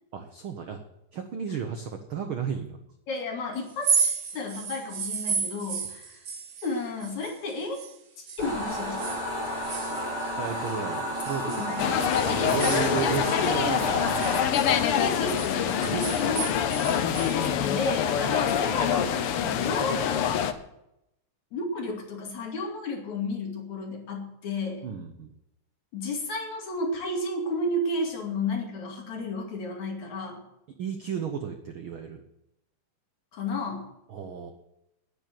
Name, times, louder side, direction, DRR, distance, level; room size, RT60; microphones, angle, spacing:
voice 1, 0.1-0.8 1.1-2.8 10.4-11.9 12.2-14.7 15.8-16.3 16.7-16.8 24.8-25.3 30.8-32.2 34.1-34.5, right 7 dB, 70° right, 6 dB, 1.3 m, -34 dB
voice 2, 3.1-4.0 4.3-6.2 6.6-7.8 8.4-9.2 11.4-12.1 14.5-16.6 17.3-20.5 21.5-24.9 25.9-30.4 33.3-33.9, left 2 dB, 60° left, 0 dB, 3.8 m, -32 dB
sound 1, 3.7-8.0 8.3-10.8 11.2-13.6 13.9-17.4, right 6 dB, 50° right, 1.4 m, -33 dB
sound 2, 8.4-14.4, equal, 15° left, 5.4 m, -31 dB
sound 3, 11.8-20.5, left 9 dB, 85° left, 1.2 m, -25 dB
10.0 x 9.9 x 7.6 m, 0.83 s
omnidirectional pair, 3.7 m